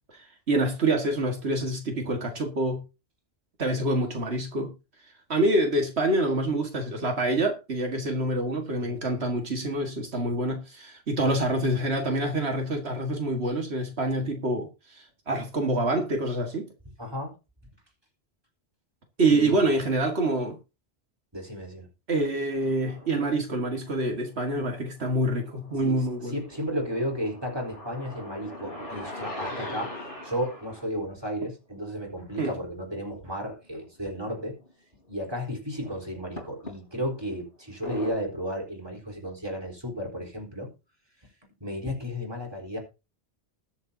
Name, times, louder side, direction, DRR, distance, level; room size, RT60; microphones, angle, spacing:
voice 1, 0.1-2.8 3.6-4.7 5.3-16.7 19.2-20.6 22.1-26.4 32.4-32.5, right 1 dB, 80° right, 2.1 m, -26 dB
voice 2, 17.0-17.3 19.3-19.6 21.3-21.9 25.8-26.0 26.3-34.6 35.1-40.7 41.6-42.8, equal, 25° right, 4.1 m, -33 dB
sound 1, 22.5-23.1 23.9-24.8 25.2-30.9 33.3-33.4 33.7-33.8 34.7-34.8 36.4-37.2 37.8-38.1, left 1 dB, 55° left, 3.8 m, -41 dB
20.5 x 7.2 x 2.8 m
omnidirectional pair, 1.1 m